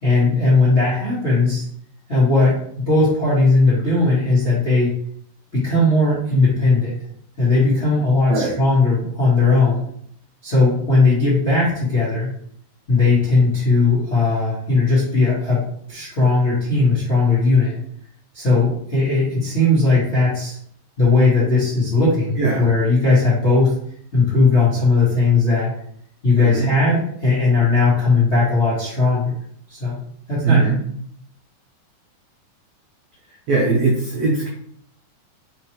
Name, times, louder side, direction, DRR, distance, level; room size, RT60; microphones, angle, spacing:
voice 1, 0.0-1.6 2.1-4.9 5.5-6.9 7.4-9.8 10.4-12.3 12.9-15.6 15.9-17.7 18.3-20.6 21.0-23.7 24.1-25.7 26.2-29.3 29.7-29.9 30.3-30.6, left 3 dB, 45° left, -10 dB, 0.8 m, -17 dB
voice 2, 22.4-22.7 26.4-26.8 30.4-30.8 33.5-34.5, right 3 dB, 85° right, -3 dB, 1.5 m, -20 dB
5.1 x 3.1 x 3.0 m, 0.66 s
omnidirectional pair, 4.0 m